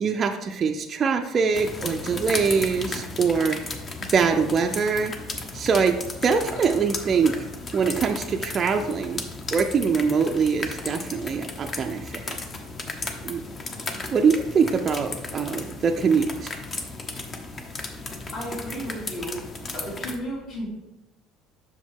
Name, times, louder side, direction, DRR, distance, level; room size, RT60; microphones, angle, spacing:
voice 1, 0.0-3.6 4.0-5.1 5.5-7.3 7.7-9.2 9.5-12.4 13.2-13.4 14.1-16.5, right 5 dB, 30° right, 3 dB, 0.4 m, -23 dB
sound 1, 1.5-20.1, left 3 dB, 25° left, 0.7 m, -35 dB
voice 2, 18.3-19.4 19.7-20.7, equal, 50° left, -9 dB, 2.4 m, -33 dB
6.3 x 5.1 x 3.6 m, 0.96 s
cardioid pair, 140°, 0 cm